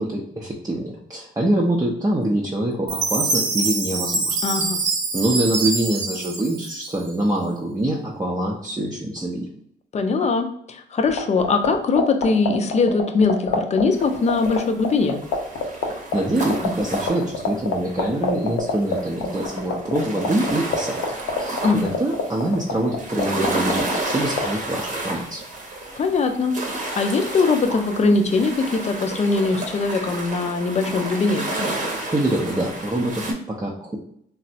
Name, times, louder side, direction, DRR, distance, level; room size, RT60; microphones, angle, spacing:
voice 1, 0.0-4.4 5.1-9.5 16.1-21.0 21.4-25.4 31.8-34.0, right 1 dB, 20° right, -3 dB, 0.5 m, -25 dB
Chime, 2.9-7.2, right 3 dB, 65° right, 0.6 m, -25 dB
voice 2, 4.4-4.8 9.9-15.2 21.6-21.9 26.0-31.5, left 4 dB, 35° left, 6 dB, 0.5 m, -21 dB
sound 1, 11.1-24.5, left 8 dB, 85° left, 0.6 m, -23 dB
sound 2, 13.9-33.3, right 2 dB, 40° right, 0.8 m, -31 dB
3.2 x 2.0 x 2.6 m, 0.69 s
cardioid pair, 90°, 20 cm